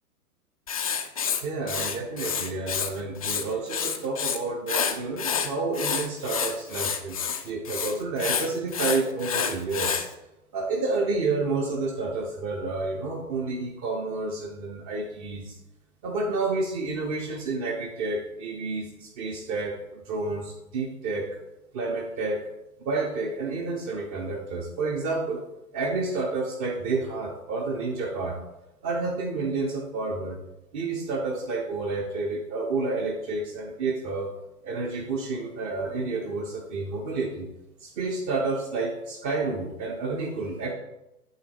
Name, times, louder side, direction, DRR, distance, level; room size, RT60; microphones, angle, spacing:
Writing, 0.7-2.9 3.2-4.4 4.7-10.1, left 7 dB, 25° left, 0.4 m, -28 dB
voice 1, 1.4-10.1 10.5-15.6 16.0-21.3 21.7-22.4 22.8-25.4 25.7-28.4 28.8-30.4 30.7-34.3 34.6-37.5 37.8-40.7, right 3 dB, 20° right, 0 dB, 0.7 m, -30 dB
9.2 x 3.4 x 6.9 m, 0.93 s
figure-of-eight pair, 115°, 45 cm